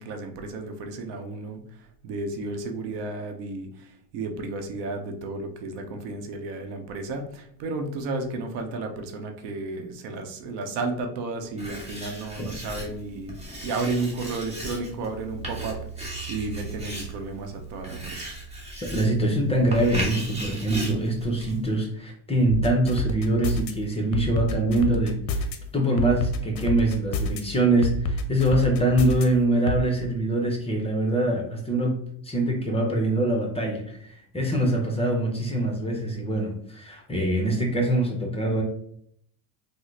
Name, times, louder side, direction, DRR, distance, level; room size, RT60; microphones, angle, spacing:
voice 1, 0.0-18.3, right 3 dB, 65° right, 5 dB, 0.7 m, -33 dB
Writing, 11.6-21.7, right 1 dB, 15° right, 1.1 m, -36 dB
voice 2, 18.8-25.5 25.7-32.0 32.2-38.6, right 1 dB, 15° left, 1 dB, 0.6 m, -24 dB
sound 1, 22.5-23.7 24.1-25.6 26.0-27.4 27.8-29.2 29.7-29.8, left 3 dB, 50° left, 0.6 m, -27 dB
3.6 x 2.0 x 3.2 m, 0.67 s
supercardioid pair, 110°, 44 cm